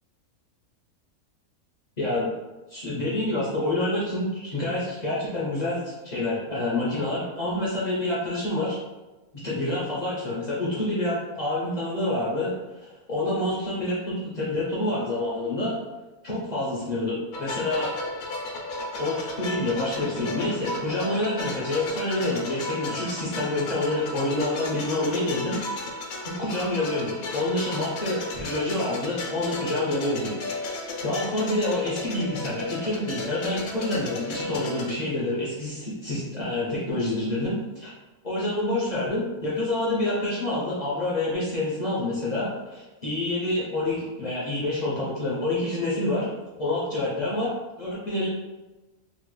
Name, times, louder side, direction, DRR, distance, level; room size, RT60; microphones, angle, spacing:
voice 1, 2.0-2.3 2.7-8.8 9.3-15.8 16.2-17.9 19.0-30.8 31.0-37.9 38.2-46.3 46.6-47.5 47.8-48.3, left 1 dB, 55° left, -7 dB, 0.4 m, -27 dB
sound 1, 17.3-34.9, left 2 dB, 75° left, 1.0 m, -34 dB
3.0 x 2.2 x 3.0 m, 1.1 s
omnidirectional pair, 1.5 m